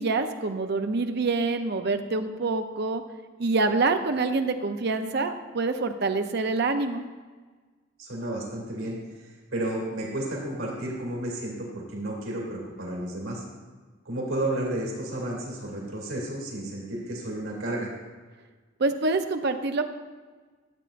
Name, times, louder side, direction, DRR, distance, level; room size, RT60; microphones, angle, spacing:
voice 1, 0.0-3.0 3.4-7.0 18.8-19.9, right 3 dB, 55° right, 7 dB, 0.6 m, -26 dB
voice 2, 8.0-13.4 14.0-17.9, right 1 dB, 85° right, -3 dB, 2.6 m, -32 dB
12.5 x 8.1 x 2.5 m, 1.4 s
head